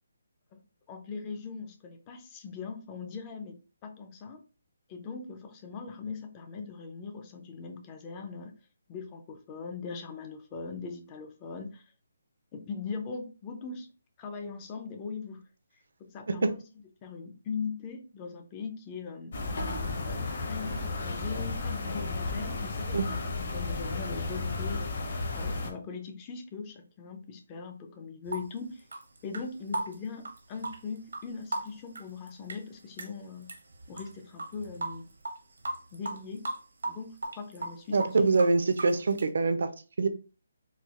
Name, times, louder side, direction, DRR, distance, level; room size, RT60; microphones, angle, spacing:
voice 1, 0.9-3.6 3.8-4.4 4.9-8.5 8.9-11.9 12.5-13.9 14.2-15.4 16.0-16.6 17.0-19.3 20.1-23.2 23.5-25.0 25.3-28.8 29.2-33.5 33.9-35.1 35.9-36.5 36.8-38.2 38.9-39.0, left 5 dB, 15° left, 5 dB, 0.3 m, -40 dB
sound 1, 19.3-25.7, left 3 dB, 45° left, 0.7 m, -33 dB
sound 2, 28.2-33.1 33.4-39.2, right 2 dB, 80° right, 0.8 m, -37 dB
voice 2, 37.9-39.7 40.0-40.1, right 3 dB, 60° right, 10 dB, 0.4 m, -24 dB
4.1 x 2.2 x 2.4 m, 0.35 s
hypercardioid pair, 175°, 0 cm